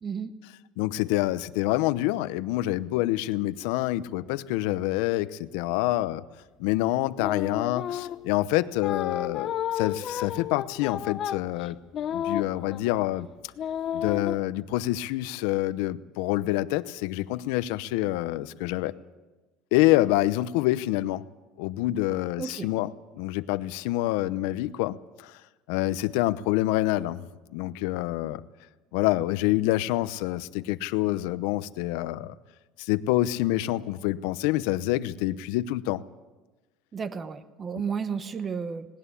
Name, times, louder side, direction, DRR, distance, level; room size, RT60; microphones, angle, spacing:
voice 1, 0.0-0.3 22.4-22.7 36.9-38.9, right 6 dB, 25° right, 12 dB, 0.9 m, -32 dB
voice 2, 0.8-6.2 6.6-11.8 12.1-13.3 13.9-18.9 19.7-21.2 21.6-25.4 25.7-27.3 27.5-28.4 28.9-32.3 32.8-36.0, left 16 dB, 80° left, 15 dB, 0.8 m, -27 dB
sound 1, 7.2-8.3 8.8-13.1 13.6-14.4, left 9 dB, 40° left, 0.7 m, -32 dB
19.0 x 18.5 x 8.4 m, 1.2 s
cardioid pair, 150°, 0 cm